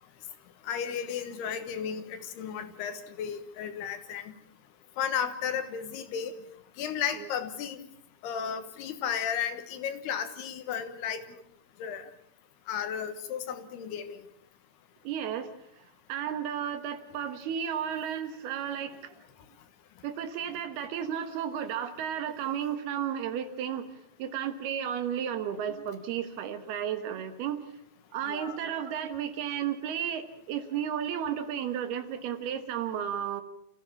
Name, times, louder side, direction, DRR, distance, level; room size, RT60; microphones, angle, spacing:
voice 1, 0.6-4.3 5.0-6.3 6.8-7.8 8.2-11.2 11.8-12.1 12.7-14.2 28.3-28.6, left 8 dB, 75° left, 9 dB, 3.2 m, -34 dB
voice 2, 15.0-15.5 16.1-19.1 20.0-23.9 24.2-27.6 28.1-33.4, right 9 dB, 70° right, 9 dB, 3.1 m, -33 dB
28.5 x 15.5 x 7.2 m, 0.71 s
omnidirectional pair, 5.0 m